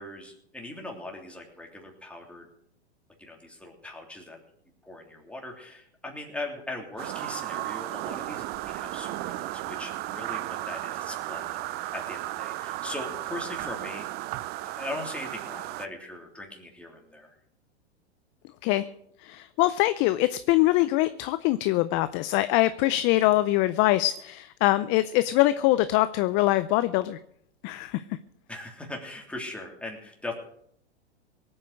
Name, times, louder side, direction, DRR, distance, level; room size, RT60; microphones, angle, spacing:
voice 1, 0.0-2.5 3.2-4.4 4.8-14.1 14.6-17.3 28.5-30.3, left 2 dB, 5° left, 0 dB, 3.3 m, -40 dB
sound 1, 7.0-15.9, right 16 dB, 30° right, 0.5 m, -34 dB
voice 2, 19.2-27.2 27.6-28.0, left 16 dB, 35° left, 13 dB, 0.5 m, -23 dB
18.5 x 8.8 x 6.4 m, 0.70 s
hypercardioid pair, 115°, 34 cm